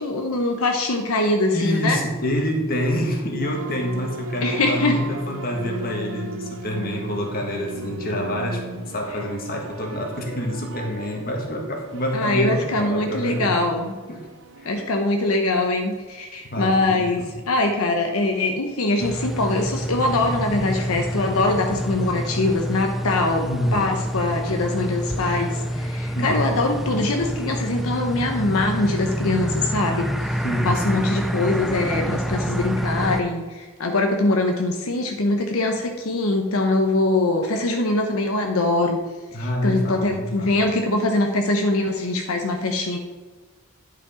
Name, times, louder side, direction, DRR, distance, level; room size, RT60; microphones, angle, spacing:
voice 1, 0.0-2.0 4.4-5.0 12.1-13.9 14.6-39.0 39.4-43.0, left 2 dB, 75° left, 3 dB, 0.8 m, -23 dB
voice 2, 1.5-13.6 14.1-14.3 14.6-14.7 16.5-17.3 23.4-23.9 26.1-26.5 30.4-31.2 39.3-40.6, left 1 dB, 40° left, 1 dB, 1.7 m, -27 dB
sound 1, 3.4-15.0, right 2 dB, 60° right, 0.6 m, -37 dB
sound 2, 19.0-33.2, equal, ahead, 0.4 m, -27 dB
11.0 x 5.0 x 4.9 m, 1.4 s
head